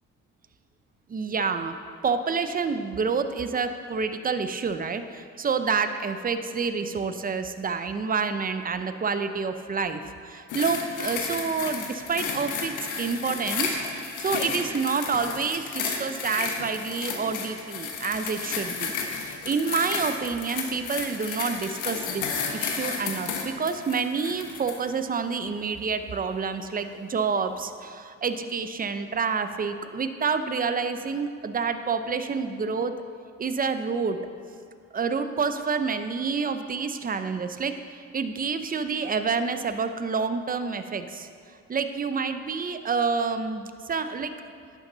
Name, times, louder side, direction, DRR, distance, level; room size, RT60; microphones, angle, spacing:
voice 1, 1.1-33.0 33.4-34.3 34.9-41.3 41.7-44.3, right 5 dB, 30° right, 9 dB, 0.6 m, -28 dB
sound 1, 10.5-24.8 25.5-25.6, left 5 dB, 90° left, 1.2 m, -32 dB
11.0 x 9.1 x 3.9 m, 2.3 s
cardioid pair, 90°, 30 cm